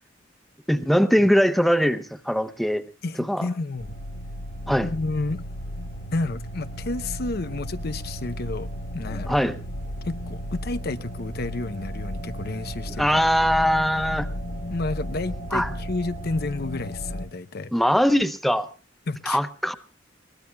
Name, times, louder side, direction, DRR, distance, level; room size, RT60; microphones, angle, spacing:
voice 1, 0.7-2.8 3.2-3.5 4.7-4.9 9.1-9.6 13.0-14.3 15.5-15.7 17.7-18.7 19.3-19.7, equal, ahead, 9 dB, 0.8 m, -21 dB
voice 2, 3.0-3.9 4.8-5.4 6.1-8.7 8.9-9.4 10.0-13.2 14.7-17.7 19.1-19.4, left 3 dB, 55° left, 11 dB, 0.7 m, -30 dB
sound 1, 3.8-17.3, equal, 70° left, 1.7 m, -34 dB
22.5 x 19.5 x 2.2 m, 0.37 s
head